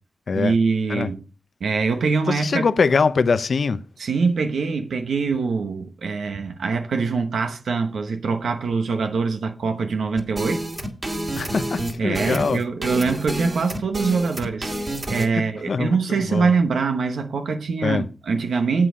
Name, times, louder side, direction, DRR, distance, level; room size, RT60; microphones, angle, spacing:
voice 1, 0.3-1.2 1.6-2.7 4.0-10.6 12.0-18.9, right 4 dB, 90° right, 1.0 m, -23 dB
voice 2, 2.3-3.8 11.4-12.6 15.3-16.5 17.8-18.1, left 5 dB, 65° left, 0.6 m, -23 dB
sound 1, 10.2-15.3, right 1 dB, 35° right, 2.2 m, -29 dB
8.3 x 7.6 x 5.0 m
wide cardioid pair, 85°, 0 cm